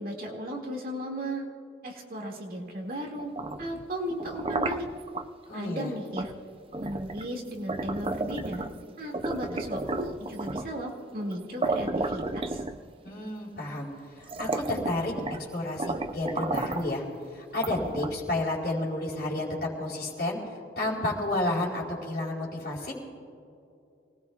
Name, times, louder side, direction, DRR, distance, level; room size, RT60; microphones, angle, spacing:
voice 1, 0.0-1.5 1.8-3.3 3.6-4.9 5.5-6.3 6.8-8.7 9.0-12.6, equal, 50° right, 0 dB, 2.3 m, -35 dB
sound 1, 3.2-5.3 6.2-6.4 6.7-8.8 9.1-10.8 11.3-11.4 11.6-13.1 13.8-13.9 14.2-15.5 15.8-16.9 17.5-18.3, right 2 dB, 30° right, 0.5 m, -33 dB
voice 2, 5.5-5.9 13.0-13.9 14.2-15.1 15.5-17.0 17.3-20.4 20.7-22.9, left 2 dB, 55° left, -9 dB, 4.5 m, -31 dB
28.5 x 19.5 x 2.4 m, 2.6 s
head